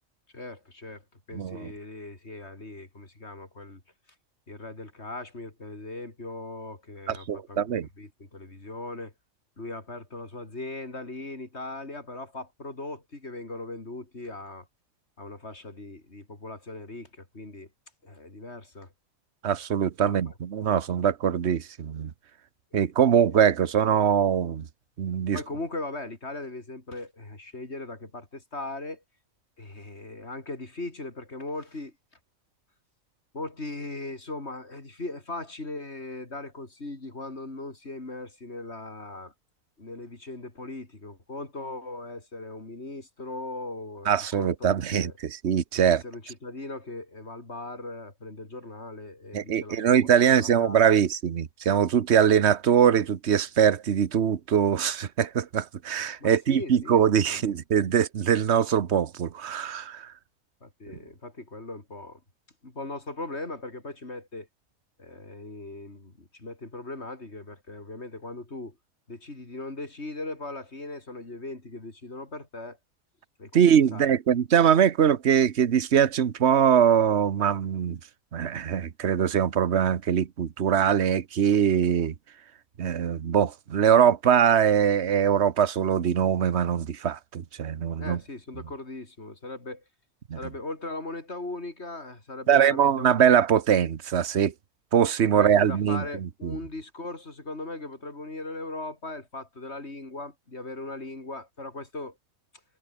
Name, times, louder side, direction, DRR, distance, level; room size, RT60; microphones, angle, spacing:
voice 1, 0.3-3.8 4.5-7.6 8.0-9.1 9.6-14.7 15.2-17.7 18.0-18.9 20.1-20.3 22.7-22.9 25.3-29.0 29.6-31.9 33.3-39.3 39.8-45.1 45.9-50.9 56.2-57.0 57.3-57.5 60.6-62.2 62.6-64.5 65.0-68.8 69.1-72.8 73.4-74.1 88.0-89.8 90.3-93.2 95.3-102.2, left 2 dB, 50° left, 4.3 m, -39 dB
voice 2, 1.3-1.7 7.1-7.9 19.4-22.1 22.7-24.7 25.0-25.4 44.1-46.0 49.3-60.1 60.9-61.0 73.5-78.0 78.3-82.1 82.8-88.2 90.3-90.4 92.5-94.5 94.9-96.6, right 8 dB, 55° right, 1.3 m, -22 dB
omnidirectional pair, 1.5 m